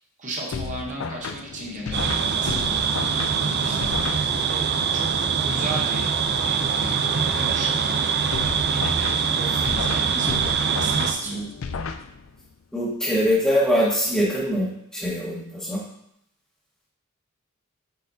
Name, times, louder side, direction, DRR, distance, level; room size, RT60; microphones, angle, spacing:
voice 1, 0.2-3.9 4.5-5.1 5.5-6.1 6.4-7.0 7.4-8.0 8.7-11.4, right 1 dB, 35° right, -1 dB, 1.0 m, -35 dB
sound 1, 0.5-4.7 8.3-12.5, left 4 dB, 70° left, 0.4 m, -33 dB
sound 2, 1.9-11.1, right 6 dB, 50° right, 0.5 m, -23 dB
voice 2, 12.7-15.8, equal, 5° left, -10 dB, 1.4 m, -23 dB
8.1 x 4.3 x 2.7 m, 0.76 s
head